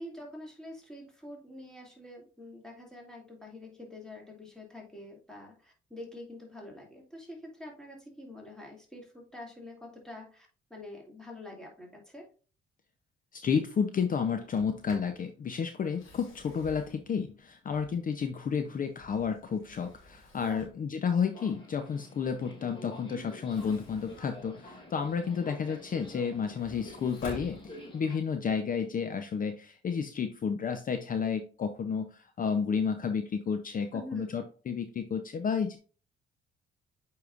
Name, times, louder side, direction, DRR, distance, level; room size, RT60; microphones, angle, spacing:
voice 1, 0.0-12.3 20.4-20.6 33.9-34.3, left 1 dB, 5° left, -2 dB, 2.6 m, -46 dB
voice 2, 13.3-35.8, left 6 dB, 45° left, 7 dB, 0.7 m, -31 dB
Sliding door, 14.4-15.2 15.8-18.2 18.7-20.9 23.3-25.2 25.7-28.2, left 1 dB, 90° left, 2.6 m, -51 dB
Subway metro underground, 21.3-28.2, left 1 dB, 25° left, 2.5 m, -47 dB
8.2 x 4.8 x 2.5 m, 0.38 s
cardioid pair, 90°, 20 cm